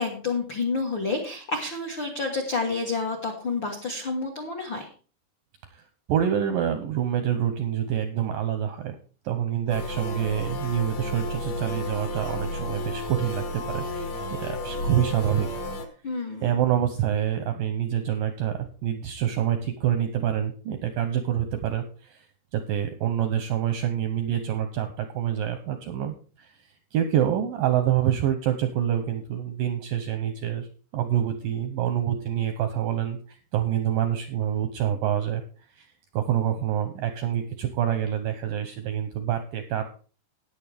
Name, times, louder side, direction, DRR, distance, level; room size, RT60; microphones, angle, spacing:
voice 1, 0.0-4.9 16.0-16.5, left 3 dB, 75° left, 1 dB, 1.1 m, -29 dB
voice 2, 6.1-9.0 9.3-15.5 16.4-22.3 22.5-30.7 30.9-39.8, right 10 dB, 80° right, 8 dB, 2.0 m, -27 dB
sound 1, 9.7-15.9, left 1 dB, 60° left, 1.9 m, -32 dB
13.5 x 9.6 x 3.4 m, 0.38 s
omnidirectional pair, 4.9 m